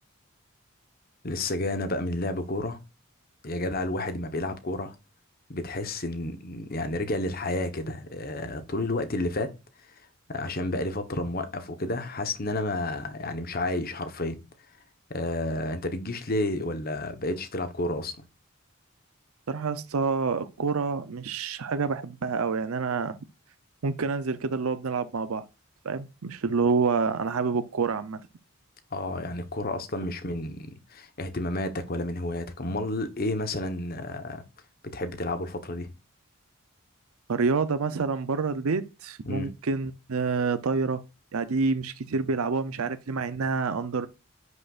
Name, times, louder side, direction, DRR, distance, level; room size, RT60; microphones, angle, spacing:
voice 1, 1.2-2.8 3.4-4.9 5.5-9.5 10.3-14.4 15.1-18.2 28.9-34.4 34.9-35.9 39.2-39.5, left 2 dB, 45° left, 1.1 m, -31 dB
voice 2, 19.5-23.2 23.8-25.5 25.8-28.2 37.3-41.0 41.3-44.1, right 4 dB, 85° right, 0.6 m, -27 dB
10.0 x 6.5 x 2.5 m
head